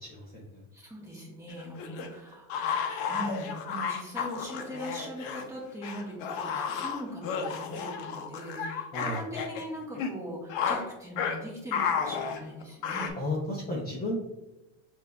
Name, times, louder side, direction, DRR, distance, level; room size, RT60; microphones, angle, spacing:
voice 1, 0.0-0.4 8.9-9.2 13.2-14.2, left 1 dB, 25° left, -3 dB, 0.6 m, -33 dB
voice 2, 0.7-2.5 3.1-13.1, equal, 10° right, -4 dB, 1.2 m, -40 dB
sound 1, 1.5-5.4 5.8-9.6 9.9-10.1 10.5-10.8 11.2-11.4 11.7-13.1, left 6 dB, 70° left, 0.7 m, -32 dB
6.6 x 2.6 x 2.2 m, 1.0 s
supercardioid pair, 130°, 39 cm